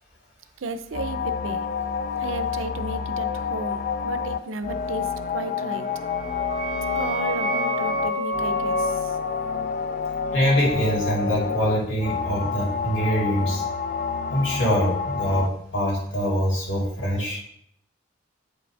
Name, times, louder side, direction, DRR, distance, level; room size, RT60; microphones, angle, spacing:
voice 1, 0.6-1.7 2.2-5.9 6.9-9.2, right 3 dB, 80° right, 11 dB, 0.6 m, -34 dB
sound 1, 0.9-15.5, left 6 dB, 40° left, 0.3 m, -29 dB
sound 2, 5.9-11.3, equal, 30° right, 0.6 m, -30 dB
voice 2, 10.3-13.6 14.3-17.4, equal, 60° left, -3 dB, 3.0 m, -24 dB
8.5 x 5.1 x 3.4 m, 0.69 s
head